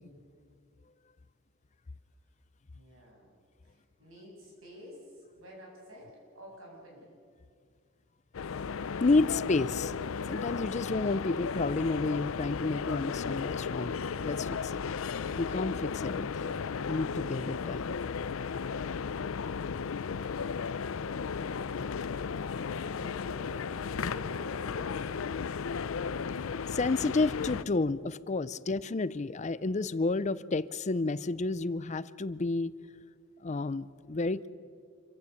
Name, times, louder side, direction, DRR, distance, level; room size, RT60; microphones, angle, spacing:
voice 1, 2.7-3.3 3.6-7.1 22.5-25.2, equal, 90° right, -2 dB, 7.9 m, -50 dB
sound 1, 8.3-27.6, left 6 dB, 85° left, 0.5 m, -35 dB
voice 2, 9.0-9.9 10.3-14.7 15.3-16.5 16.9-18.0 26.7-32.7 33.4-34.5, left 3 dB, 35° left, 17 dB, 0.5 m, -30 dB
26.5 x 15.0 x 8.3 m, 2.2 s
head